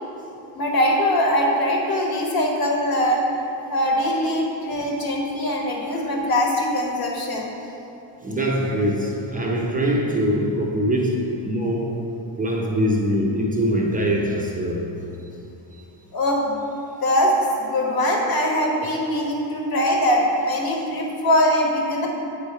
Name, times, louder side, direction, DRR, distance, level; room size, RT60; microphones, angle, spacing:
voice 1, 0.5-3.2 3.7-7.5 16.1-16.6 17.0-17.3 17.6-22.1, equal, 50° left, 0 dB, 1.3 m, -22 dB
voice 2, 8.2-12.1 12.4-15.0 15.7-15.8, equal, 20° right, -2 dB, 0.6 m, -23 dB
8.3 x 3.4 x 5.4 m, 2.9 s
cardioid pair, 135°, 45 cm